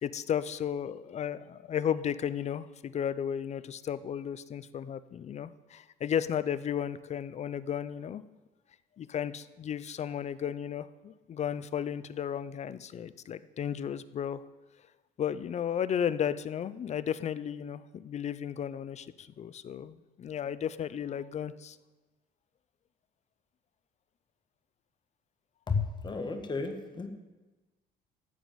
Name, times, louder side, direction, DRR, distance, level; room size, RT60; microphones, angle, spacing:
voice 1, 0.0-8.2 9.0-14.4 15.2-21.8, left 9 dB, 40° left, 16 dB, 0.6 m, -34 dB
voice 2, 25.7-27.1, left 4 dB, 25° left, 5 dB, 1.5 m, -32 dB
13.0 x 5.1 x 9.1 m, 1.2 s
cardioid pair, 110°, 17 cm